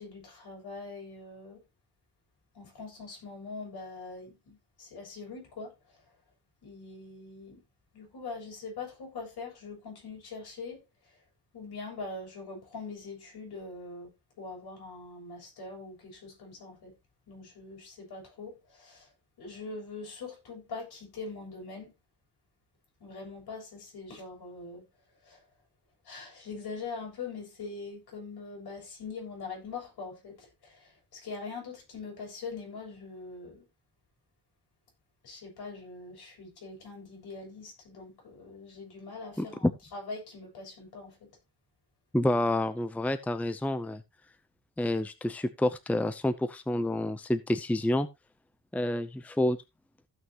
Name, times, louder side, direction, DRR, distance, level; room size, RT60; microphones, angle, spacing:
voice 1, 0.0-1.6 2.5-6.0 6.6-7.6 7.9-11.2 11.5-14.1 14.4-16.9 17.3-19.1 19.4-21.9 23.0-24.9 25.2-25.4 26.0-33.6 35.2-41.3, left 4 dB, 70° left, 7.6 m, -43 dB
voice 2, 39.4-39.7 42.1-44.0 44.8-48.1 48.7-49.6, left 1 dB, 5° left, 0.7 m, -28 dB
15.5 x 5.8 x 3.0 m
cardioid pair, 130°, 39 cm